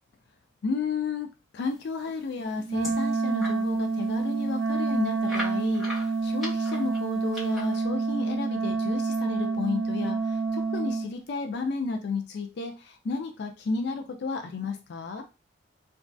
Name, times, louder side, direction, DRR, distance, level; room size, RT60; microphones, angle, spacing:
voice 1, 0.6-15.2, left 4 dB, 60° left, 5 dB, 0.3 m, -32 dB
sound 1, 2.1-3.6 4.1-4.2 4.4-4.5 5.2-7.8, left 1 dB, ahead, 1.3 m, -39 dB
Wind instrument woodwind instrument, 2.7-11.1, right 4 dB, 65° right, 0.4 m, -28 dB
3.0 x 2.3 x 2.5 m, 0.30 s
head